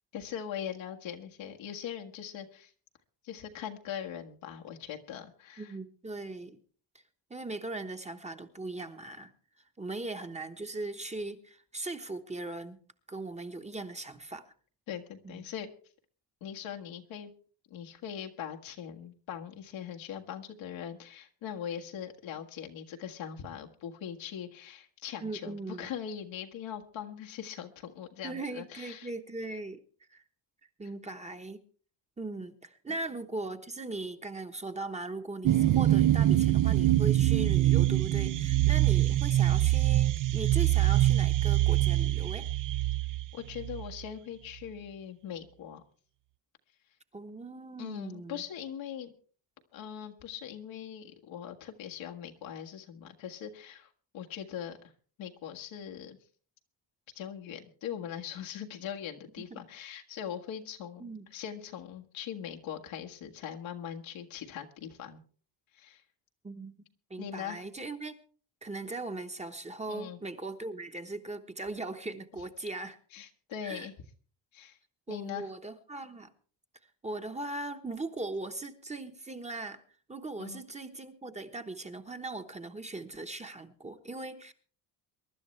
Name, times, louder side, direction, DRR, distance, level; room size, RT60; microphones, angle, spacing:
voice 1, 0.1-2.7 3.2-5.7 14.9-15.7 16.4-17.3 17.7-29.1 43.3-45.8 47.8-49.1 49.7-54.8 55.2-56.2 57.2-65.2 65.7-66.0 67.2-67.6 69.9-70.2 73.1-73.9 74.5-74.8 75.1-75.5 80.4-80.6, left 9 dB, 90° left, 1.8 m, -41 dB
voice 2, 5.6-6.6 7.3-9.3 9.8-12.8 13.1-14.5 15.2-15.5 25.2-25.9 28.2-29.8 30.1-30.2 30.8-31.6 32.2-42.5 47.1-48.4 59.5-59.6 61.0-61.3 66.4-66.7 67.1-68.2 68.6-73.0 73.6-73.9 75.1-76.3 77.0-79.8 80.1-84.5, right 2 dB, 15° right, 1.1 m, -39 dB
sound 1, 35.4-44.0, right 14 dB, 45° right, 0.5 m, -24 dB
23.0 x 11.5 x 3.3 m
cardioid pair, 120°, 45 cm